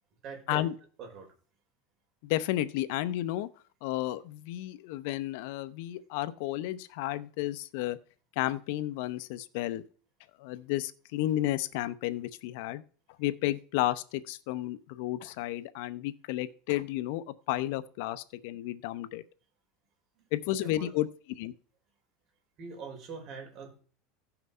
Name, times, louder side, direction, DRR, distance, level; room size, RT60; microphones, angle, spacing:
voice 1, 0.2-0.7 1.0-1.3 20.6-20.9 22.6-23.8, right 5 dB, 40° right, 2 dB, 4.7 m, -43 dB
voice 2, 2.2-3.5 3.8-8.0 8.4-9.8 10.4-12.8 13.2-19.2 20.3-21.1 21.4-21.5, left 15 dB, 70° left, 14 dB, 0.8 m, -32 dB
16.0 x 6.0 x 5.5 m, 0.43 s
supercardioid pair, 135°, 0 cm